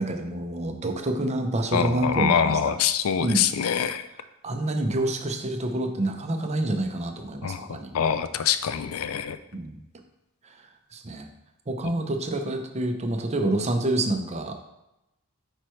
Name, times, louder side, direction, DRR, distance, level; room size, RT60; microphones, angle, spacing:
voice 1, 0.0-2.7 3.2-3.4 4.4-7.9 9.5-9.8 10.9-11.3 11.7-14.5, right 1 dB, 30° right, 5 dB, 0.6 m, -27 dB
voice 2, 1.7-4.1 7.4-9.4, left 8 dB, 70° left, 12 dB, 0.4 m, -25 dB
8.9 x 4.5 x 3.1 m, 0.91 s
head